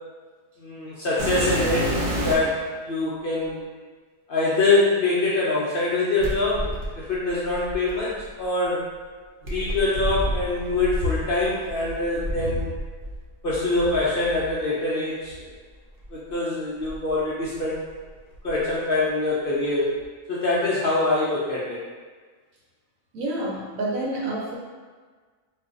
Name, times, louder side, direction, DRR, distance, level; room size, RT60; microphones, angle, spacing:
voice 1, 0.6-3.6 4.3-8.8 9.5-12.7 13.4-15.5 16.1-17.9 18.4-19.9 20.3-21.8, left 2 dB, 60° left, -7 dB, 0.6 m, -24 dB
sound 1, 1.2-2.6 3.4-3.5 6.2-8.3 9.4-13.2 13.5-14.5 15.3-15.4 16.0-16.1 16.8-17.9 18.2-18.7 20.0-20.1, equal, 55° right, 0.7 m, -30 dB
voice 2, 23.1-24.6, right 1 dB, 85° right, -3 dB, 1.1 m, -28 dB
2.5 x 2.2 x 3.6 m, 1.5 s
omnidirectional pair, 1.4 m